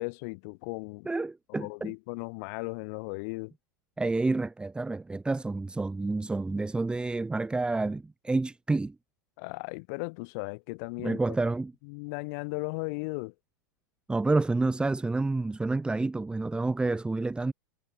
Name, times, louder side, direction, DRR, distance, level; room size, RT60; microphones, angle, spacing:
voice 1, 0.0-1.1 1.5-3.5 9.4-11.5 11.8-13.3, left 31 dB, 55° left, 2.5 m, -36 dB
voice 2, 1.0-1.9 4.0-8.9 11.0-11.7 14.1-17.5, right 3 dB, 10° right, 1.6 m, -29 dB
hypercardioid pair, 110°, 11 cm